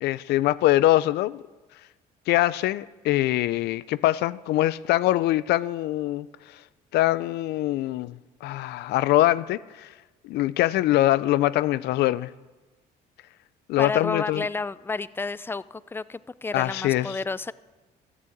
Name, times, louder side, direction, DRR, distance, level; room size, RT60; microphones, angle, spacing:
voice 1, 0.0-1.4 2.3-6.3 6.9-8.1 8.4-9.9 10.2-12.3 13.7-14.5 16.5-17.2, left 15 dB, 75° left, 17 dB, 0.4 m, -23 dB
voice 2, 13.8-17.5, left 3 dB, 15° left, 18 dB, 0.4 m, -31 dB
13.0 x 11.0 x 8.5 m, 1.2 s
cardioid pair, 110°, 17 cm